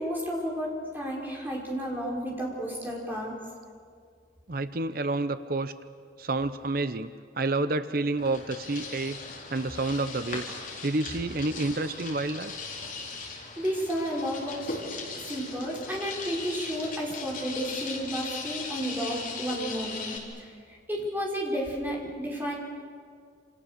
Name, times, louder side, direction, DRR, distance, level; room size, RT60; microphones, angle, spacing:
voice 1, 0.0-3.4 13.6-14.6 15.1-22.6, equal, 10° right, -3 dB, 5.3 m, -32 dB
voice 2, 4.5-5.7 6.2-7.1 7.4-9.2 9.5-10.6 10.8-12.5, right 2 dB, 50° right, 11 dB, 0.7 m, -29 dB
sound 1, 8.2-20.2, left 4 dB, 45° left, 4.0 m, -38 dB
28.0 x 27.5 x 6.8 m, 2.1 s
head